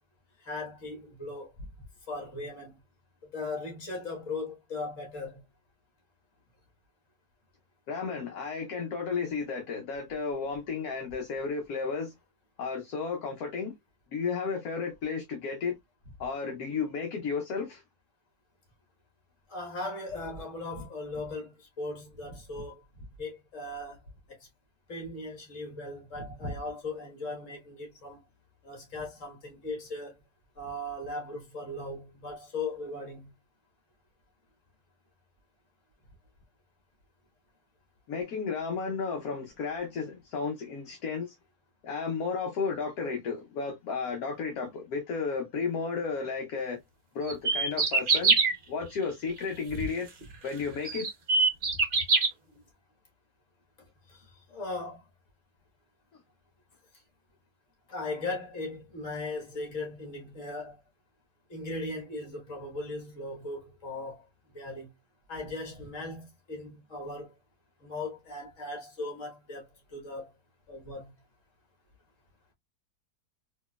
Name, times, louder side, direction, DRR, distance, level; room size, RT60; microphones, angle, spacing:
voice 1, 0.5-1.5 2.1-2.8 3.3-5.4 19.5-22.8 23.2-24.0 24.9-28.2 28.6-30.1 30.6-33.3 49.7-49.9 54.1-54.2 54.5-55.0 57.9-60.7 61.5-64.2 64.5-64.9 65.3-67.3 67.8-70.3 70.7-71.1, left 2 dB, 50° left, 1.8 m, -38 dB
voice 2, 7.9-12.1 12.6-13.7 14.1-15.8 16.2-17.8 38.1-41.3 41.8-46.8 47.1-48.4 48.7-50.1 50.4-51.0, left 5 dB, 70° left, 1.2 m, -33 dB
sound 1, 47.3-48.5 50.2-50.3 50.9-52.3, right 4 dB, 40° right, 0.8 m, -23 dB
4.3 x 2.9 x 2.3 m
omnidirectional pair, 1.7 m